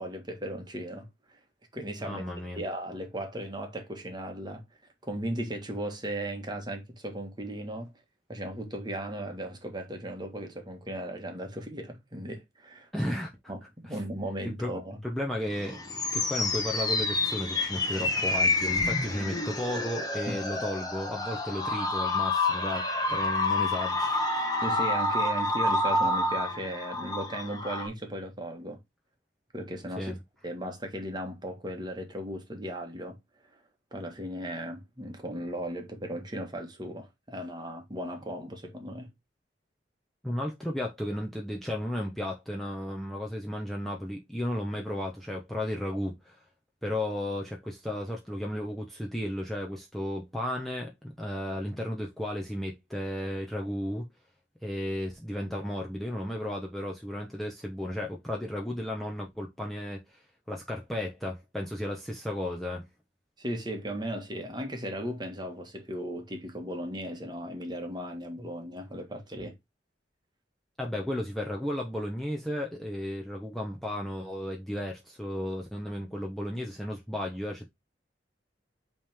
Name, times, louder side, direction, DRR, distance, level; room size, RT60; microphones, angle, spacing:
voice 1, 0.0-1.4 1.7-2.2 2.6-4.6 5.0-7.9 8.3-12.9 13.5-15.0 20.3-20.4 24.6-28.8 29.5-30.2 30.4-33.2 33.9-39.1 63.4-69.6, right 1 dB, 25° right, 1.6 m, -36 dB
voice 2, 2.0-2.6 12.9-13.3 13.8-14.0 14.4-14.7 15.0-15.8 16.1-24.2 24.4-24.6 30.0-30.1 40.2-46.4 46.8-54.0 54.6-60.2 60.5-62.8 70.8-77.7, left 1 dB, ahead, 1.0 m, -34 dB
sound 1, 15.5-27.9, left 2 dB, 20° left, 1.3 m, -28 dB
8.5 x 3.5 x 3.6 m
head